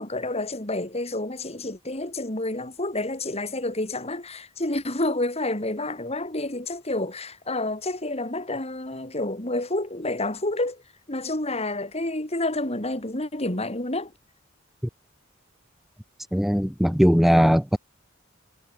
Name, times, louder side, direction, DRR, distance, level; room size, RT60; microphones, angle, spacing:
voice 1, 0.0-10.8 11.1-14.1, left 2 dB, 30° left, 3.9 m, -29 dB
voice 2, 16.3-17.8, equal, ahead, 1.1 m, -19 dB
head